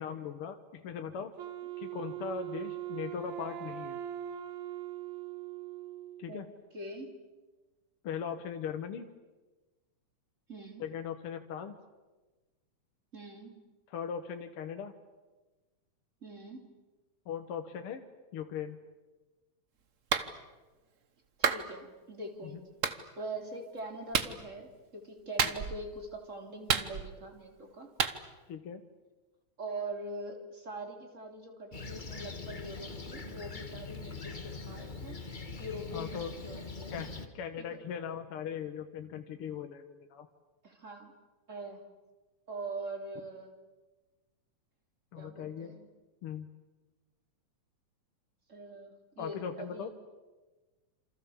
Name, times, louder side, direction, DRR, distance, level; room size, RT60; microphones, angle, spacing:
voice 1, 0.0-1.3 1.8-4.0 6.2-6.5 8.0-9.1 10.8-11.8 13.9-14.9 17.3-18.1 18.3-18.8 22.4-22.5 28.5-28.8 35.9-36.3 36.9-40.3 45.1-45.8 46.2-46.5 49.2-49.9, left 7 dB, 55° left, 6 dB, 1.9 m, -39 dB
Wind instrument woodwind instrument, 1.4-6.4, right 11 dB, 70° right, 2.3 m, -41 dB
voice 2, 6.7-7.1 10.5-10.8 13.1-13.5 16.2-16.7 21.4-22.6 23.2-27.9 29.6-35.2 35.6-37.0 37.6-37.8 40.6-41.1 41.5-41.8 42.5-43.5 45.2-45.9 48.5-49.9, right 2 dB, 25° right, 3 dB, 3.6 m, -43 dB
Clapping, 20.1-20.3 21.4-21.6 22.8-23.0 24.1-24.3 25.4-25.8 26.7-27.3 28.0-28.2, right 6 dB, 85° right, 0.6 m, -29 dB
Fixed-wing aircraft airplane, 31.7-37.3, left 4 dB, 25° left, 1.1 m, -42 dB
28.0 x 26.5 x 7.2 m, 1.2 s
omnidirectional pair, 3.4 m